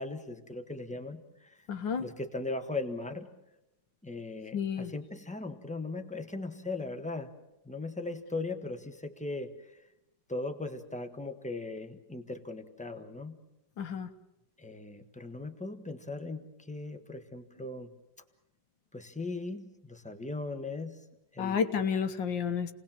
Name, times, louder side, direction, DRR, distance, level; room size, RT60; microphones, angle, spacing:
voice 1, 0.0-1.6 2.0-3.3 4.0-7.3 7.6-9.5 10.3-13.4 14.6-16.4 16.7-17.9 18.9-21.0 21.3-21.8, left 2 dB, 5° left, 6 dB, 1.1 m, -38 dB
voice 2, 1.7-2.1 4.5-4.9 13.8-14.1 21.4-22.7, left 6 dB, 60° left, 9 dB, 1.8 m, -31 dB
29.5 x 19.5 x 7.4 m, 0.93 s
omnidirectional pair, 2.4 m